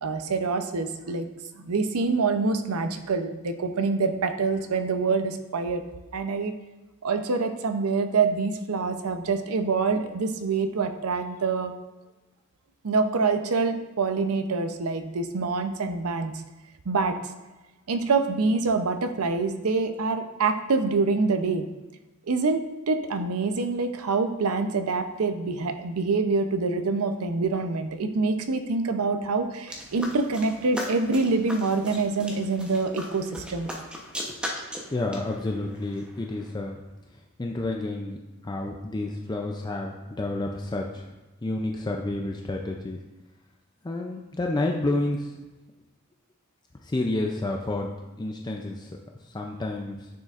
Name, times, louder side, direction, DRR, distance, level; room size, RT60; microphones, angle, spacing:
voice 1, 0.0-1.3 1.6-5.8 6.1-6.5 7.0-11.7 12.8-16.3 16.9-17.2 17.9-21.7 22.3-33.7, right 4 dB, 90° right, 8 dB, 0.6 m, -26 dB
sound 1, 29.7-36.5, equal, 5° right, 0.8 m, -38 dB
voice 2, 34.9-36.8 37.1-38.2 38.4-41.1 41.4-43.0 43.8-45.3 46.8-47.9 48.2-49.0 49.2-50.1, left 2 dB, 20° left, 1 dB, 0.4 m, -30 dB
9.3 x 6.6 x 2.5 m, 1.1 s
head